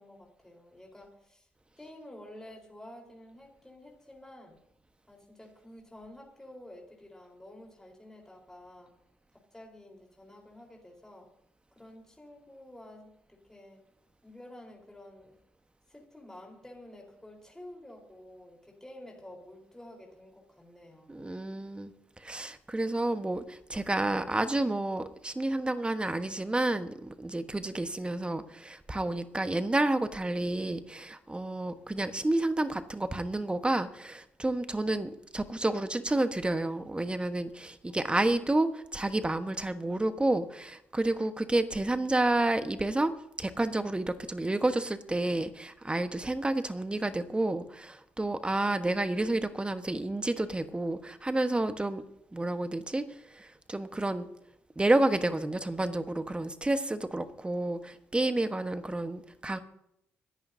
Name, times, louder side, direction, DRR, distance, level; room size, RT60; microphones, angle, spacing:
voice 1, 0.0-1.5 1.8-4.6 5.1-8.9 9.3-11.3 11.7-13.8 14.2-15.4 15.9-21.3, left 1 dB, 10° left, -1 dB, 4.3 m, -50 dB
voice 2, 21.1-21.9 22.2-52.0 52.3-53.0 53.3-54.3 54.8-59.6, right 2 dB, 15° right, 10 dB, 1.3 m, -30 dB
26.0 x 11.0 x 2.8 m, 0.78 s
hypercardioid pair, 45°, 6 cm